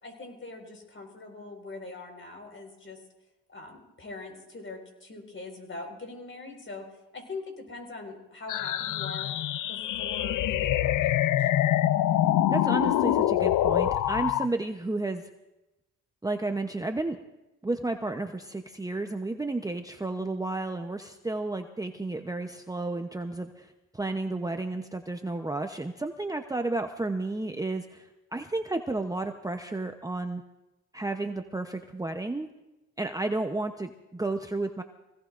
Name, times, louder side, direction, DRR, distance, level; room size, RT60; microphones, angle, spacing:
voice 1, 0.0-3.0 3.5-6.8 7.1-9.4 9.7-11.5, left 3 dB, 40° left, 3 dB, 4.8 m, -42 dB
sound 1, 8.5-14.5, left 12 dB, 75° left, 0.6 m, -25 dB
voice 2, 12.5-15.2 16.2-17.2 17.6-30.4 30.9-32.5 33.0-34.8, right 2 dB, 10° right, 5 dB, 0.8 m, -32 dB
24.5 x 17.0 x 2.6 m, 0.99 s
cardioid pair, 80°, 31 cm